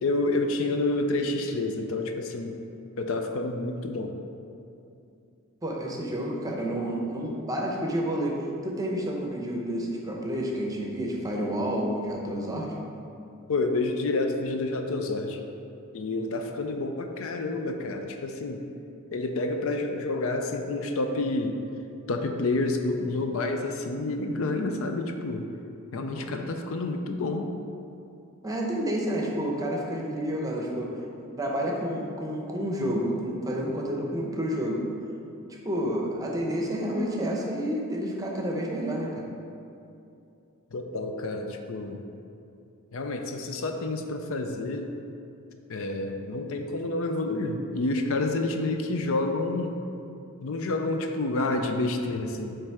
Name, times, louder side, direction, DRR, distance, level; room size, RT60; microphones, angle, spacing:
voice 1, 0.0-2.6 3.0-4.1 13.5-15.4 15.9-18.7 19.1-21.6 22.1-25.5 25.9-27.5 40.7-42.0 42.9-44.9 45.7-49.8 50.4-52.6, left 2 dB, 65° left, 5 dB, 0.5 m, -29 dB
voice 2, 5.6-8.4 8.6-12.8 26.2-26.4 28.4-30.9 31.2-34.8 35.5-39.3, equal, 15° right, -1 dB, 0.7 m, -30 dB
7.7 x 3.4 x 4.7 m, 2.7 s
head